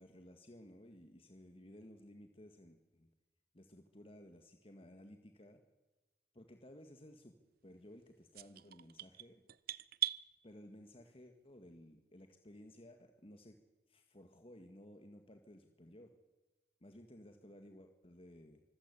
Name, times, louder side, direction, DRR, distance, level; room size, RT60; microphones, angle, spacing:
voice 1, 0.0-3.1 3.5-5.6 6.3-7.3 7.6-9.4 10.4-13.6 13.9-16.1 16.8-18.6, left 1 dB, 35° left, 6 dB, 1.8 m, -57 dB
sound 1, 8.3-10.2, right 13 dB, 60° right, 0.6 m, -39 dB
25.0 x 16.0 x 8.3 m, 1.2 s
head